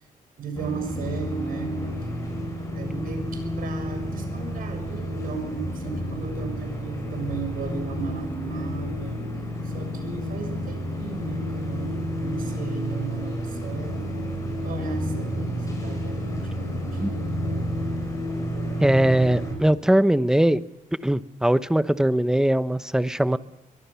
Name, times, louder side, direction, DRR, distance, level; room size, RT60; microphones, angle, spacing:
voice 1, 0.4-1.8 2.7-9.2 9.6-14.1 14.6-17.0, right 6 dB, 80° right, 6 dB, 6.8 m, -36 dB
sound 1, 0.5-19.5, equal, 25° left, 7.6 m, -30 dB
voice 2, 18.8-20.6 21.0-23.4, right 1 dB, 5° right, 13 dB, 0.9 m, -21 dB
23.0 x 23.0 x 7.0 m, 0.99 s
cardioid pair, 135°, 15 cm